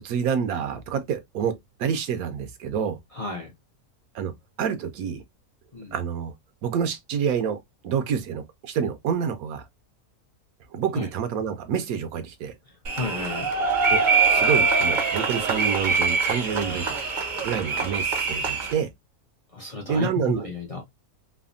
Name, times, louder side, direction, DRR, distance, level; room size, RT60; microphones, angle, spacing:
voice 1, 0.0-3.0 4.1-5.2 5.9-6.3 6.6-7.6 7.8-9.7 10.7-12.5 13.9-14.0 14.3-17.0 17.4-18.9 19.9-20.5, right 7 dB, 75° right, 1.0 m, -28 dB
voice 2, 3.2-3.5 5.7-5.9 10.9-11.1 12.9-13.5 19.5-20.8, left 4 dB, 60° left, 0.3 m, -32 dB
sound 1, 12.8-18.7, right 4 dB, 50° right, 0.6 m, -23 dB
3.2 x 2.0 x 2.4 m
omnidirectional pair, 1.6 m